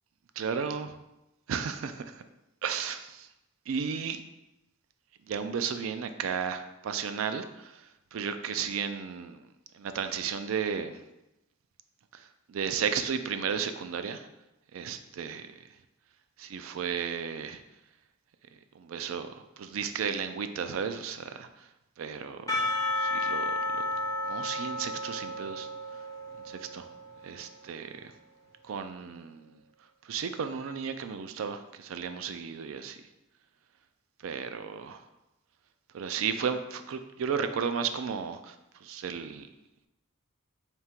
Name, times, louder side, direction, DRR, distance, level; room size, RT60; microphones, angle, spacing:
voice 1, 0.4-1.0 1.5-2.2 2.6-3.3 3.7-4.2 5.3-9.4 9.7-11.0 12.1-14.3 14.7-15.5 16.4-17.6 18.7-21.7 22.0-23.6 24.3-25.7 26.4-26.9 27.2-28.1 28.6-29.6 30.0-33.0 34.2-35.0 35.9-39.5, right 6 dB, 70° right, 9 dB, 0.4 m, -34 dB
Percussion / Church bell, 22.5-27.5, left 2 dB, 15° left, 0.9 m, -32 dB
3.6 x 2.8 x 4.3 m, 0.93 s
head